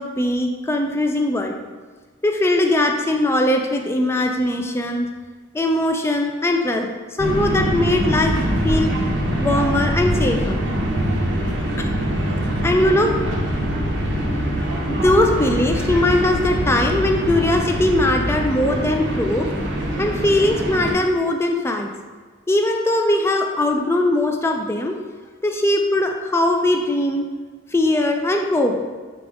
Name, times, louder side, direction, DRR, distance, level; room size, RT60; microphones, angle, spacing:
voice 1, 0.0-1.6 2.2-5.1 5.5-6.9 7.2-8.4 8.6-8.9 9.4-10.6 11.8-11.9 12.6-13.2 14.9-19.5 20.0-21.9 22.5-25.0 25.4-27.3 27.7-28.8, left 1 dB, 15° left, 3 dB, 0.3 m, -20 dB
sound 1, 7.2-20.9, equal, 70° right, 0.7 m, -23 dB
5.0 x 2.4 x 3.5 m, 1.5 s
head